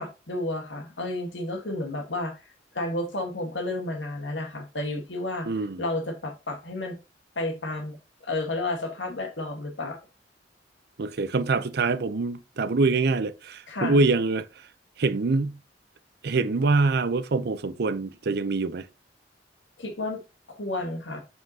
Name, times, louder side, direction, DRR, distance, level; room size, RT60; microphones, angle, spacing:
voice 1, 0.0-2.4 2.7-5.5 5.8-7.0 7.3-10.0 13.7-14.0 19.8-20.2 20.5-21.2, left 2 dB, 85° left, 1.7 m, -31 dB
voice 2, 5.5-5.8 11.0-14.5 15.0-15.6 16.2-18.9, right 3 dB, 65° right, 0.6 m, -24 dB
7.4 x 5.7 x 2.8 m
head